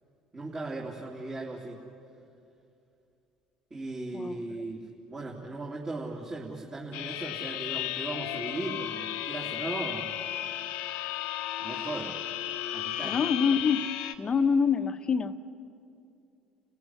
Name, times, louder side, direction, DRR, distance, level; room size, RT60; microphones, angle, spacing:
voice 1, 0.3-1.8 3.7-4.8 5.1-10.1 11.6-12.2 12.7-13.2, right 2 dB, 25° right, -3 dB, 3.3 m, -37 dB
voice 2, 4.1-4.6 13.0-13.9 14.2-15.4, left 6 dB, 35° left, 9 dB, 1.2 m, -26 dB
sound 1, 6.9-14.2, left 13 dB, 80° left, 1.2 m, -34 dB
29.5 x 15.5 x 9.9 m, 2.6 s
supercardioid pair, 80°, 2 cm